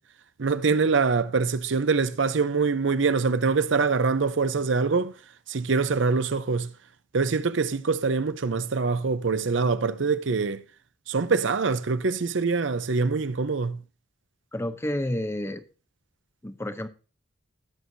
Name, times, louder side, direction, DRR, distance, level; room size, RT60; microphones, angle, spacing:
voice 1, 0.4-5.2 5.5-6.7 7.1-10.6 11.1-13.8, right 4 dB, 70° right, 0.6 m, -24 dB
voice 2, 14.5-15.6 16.4-16.9, left 1 dB, 15° left, 0.6 m, -30 dB
18.5 x 6.2 x 2.7 m
head